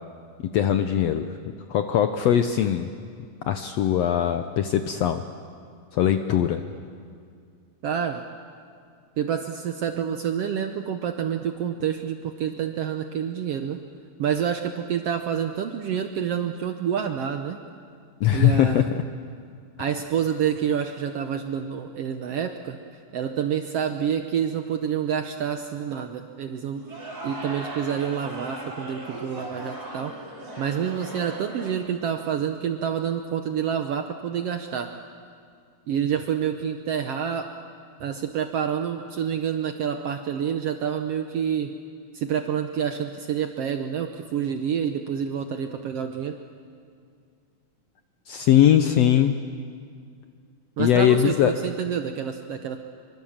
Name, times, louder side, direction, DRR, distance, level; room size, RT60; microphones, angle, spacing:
voice 1, 0.4-1.3 1.7-2.9 3.5-5.2 5.9-6.6 18.2-18.9 48.3-49.4 50.8-51.5, left 10 dB, 75° left, 8 dB, 1.5 m, -20 dB
voice 2, 7.8-8.2 9.2-13.8 14.2-17.6 18.3-18.8 19.8-22.8 23.1-26.8 27.2-30.1 30.6-34.9 35.9-37.5 38.0-41.7 42.1-46.4 50.8-52.8, right 8 dB, 70° right, 7 dB, 1.5 m, -28 dB
sound 1, 26.7-31.7, right 1 dB, 30° right, 4.4 m, -38 dB
25.0 x 24.0 x 7.3 m, 2.2 s
omnidirectional pair, 3.7 m